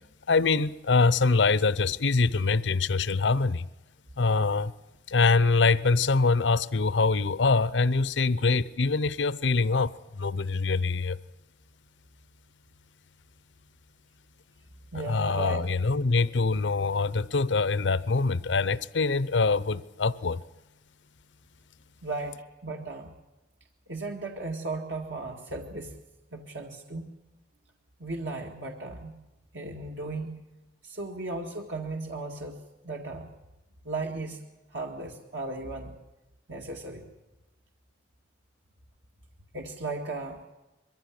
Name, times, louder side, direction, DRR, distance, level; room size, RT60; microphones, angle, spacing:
voice 1, 0.3-3.7 4.2-4.7 5.1-11.2 15.0-20.4, left 4 dB, 85° left, 0.7 m, -24 dB
voice 2, 14.9-15.6 22.0-23.1 23.9-26.0 26.3-27.1 28.0-29.1 29.5-30.4 30.8-32.6 32.8-33.3 33.8-34.4 34.7-35.9 36.5-37.0 39.5-40.4, right 2 dB, 80° right, 2.0 m, -36 dB
22.5 x 15.0 x 10.0 m
head